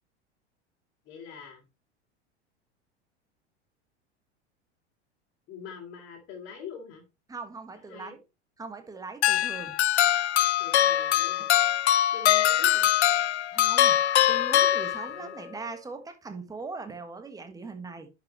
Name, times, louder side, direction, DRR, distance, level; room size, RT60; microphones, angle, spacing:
voice 1, 1.0-1.6 5.5-7.0 7.7-8.2 10.6-11.5 12.1-12.9 15.1-15.4, left 6 dB, 35° left, 2.7 m, -44 dB
voice 2, 7.3-8.2 8.6-9.8 13.5-14.0 14.3-18.1, right 4 dB, 10° right, 1.4 m, -40 dB
sound 1, 9.2-15.4, left 12 dB, 75° left, 0.5 m, -23 dB
11.0 x 5.7 x 3.1 m
figure-of-eight pair, 85°, 34 cm